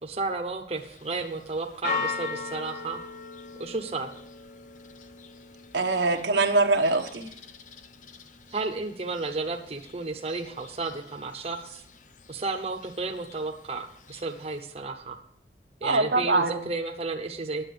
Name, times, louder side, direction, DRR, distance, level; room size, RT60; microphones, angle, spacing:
voice 1, 0.0-3.0 3.6-4.1 8.5-11.8 12.3-15.2 15.8-17.6, right 3 dB, 35° right, 3 dB, 0.9 m, -32 dB
Church bell, 0.8-14.6, left 5 dB, 45° left, 0.6 m, -41 dB
voice 2, 5.7-7.3 15.8-16.6, right 3 dB, 80° right, 4 dB, 1.0 m, -23 dB
9.7 x 7.1 x 6.8 m, 0.66 s
head